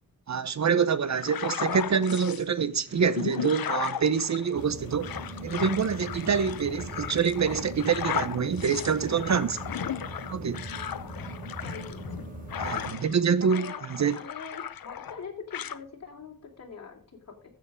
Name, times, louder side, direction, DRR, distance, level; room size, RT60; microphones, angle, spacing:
voice 1, 0.3-5.2 5.4-9.6 10.3-10.6 12.6-14.2, right 6 dB, 55° right, 0.7 m, -26 dB
sound 1, 1.2-2.4 2.9-13.2 13.5-15.2 15.5-15.8, left 9 dB, 85° left, 0.8 m, -36 dB
sound 2, 4.5-12.9, right 1 dB, 25° right, 4.1 m, -40 dB
voice 2, 11.6-12.2 12.7-13.8 14.1-17.5, left 5 dB, 50° left, 3.4 m, -43 dB
13.5 x 7.8 x 5.1 m
wide cardioid pair, 175°, 34 cm